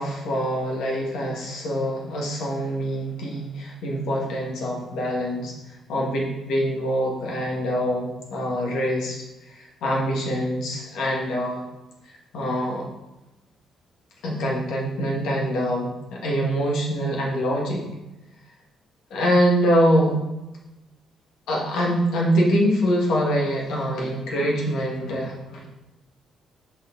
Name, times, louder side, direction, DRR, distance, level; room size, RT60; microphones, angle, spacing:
voice 1, 0.0-5.5 5.9-9.2 9.5-11.6 12.3-12.9 14.2-17.8 19.1-20.2 21.5-25.7, equal, 80° left, -2 dB, 1.7 m, -24 dB
6.3 x 5.4 x 3.9 m, 0.99 s
cardioid pair, 90°, 0 cm